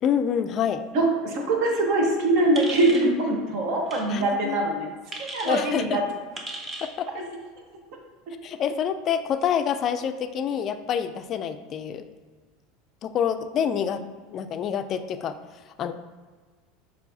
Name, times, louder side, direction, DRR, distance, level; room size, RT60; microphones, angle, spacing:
voice 1, 0.0-0.8 4.1-4.6 5.5-6.0 6.8-7.1 8.4-12.0 13.0-14.0 14.3-15.4 15.8-15.9, left 8 dB, 45° left, 10 dB, 0.3 m, -27 dB
voice 2, 0.9-4.9 5.2-6.0, right 2 dB, 60° right, 1 dB, 1.0 m, -23 dB
sound 1, 2.5-3.1 3.9-4.1 5.1-5.6 6.3-6.9, right 2 dB, 25° right, 0.7 m, -36 dB
6.6 x 2.7 x 2.6 m, 1.4 s
hypercardioid pair, 100°, 0 cm